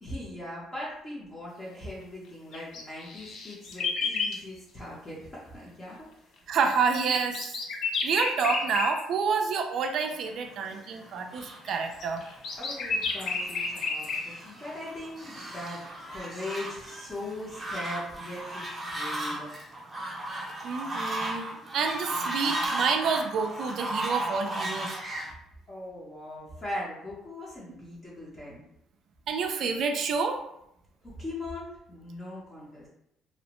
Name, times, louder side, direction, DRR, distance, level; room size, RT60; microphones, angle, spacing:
voice 1, 0.0-6.3 12.6-19.5 25.7-28.6 31.0-32.9, left 1 dB, 25° left, -7 dB, 0.7 m, -40 dB
sound 1, 2.5-4.4 6.6-9.0 10.2-10.3 11.7-14.3, left 4 dB, 60° left, 0.4 m, -31 dB
voice 2, 6.5-7.5 8.0-12.2 20.6-25.0 29.3-30.4, right 5 dB, 60° right, 5 dB, 0.3 m, -28 dB
Fowl, 10.5-25.3, right 1 dB, 20° right, 0.7 m, -36 dB
2.6 x 2.1 x 2.9 m, 0.78 s
cardioid pair, 130°, 0 cm